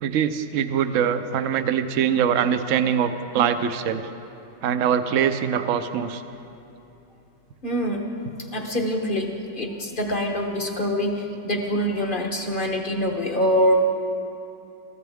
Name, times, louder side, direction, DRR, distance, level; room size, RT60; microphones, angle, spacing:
voice 1, 0.0-4.1 4.6-6.2, right 8 dB, 65° right, 10 dB, 0.8 m, -23 dB
voice 2, 7.6-8.1 8.5-13.8, equal, 35° left, 2 dB, 0.9 m, -24 dB
21.5 x 14.5 x 3.5 m, 2.9 s
omnidirectional pair, 1.9 m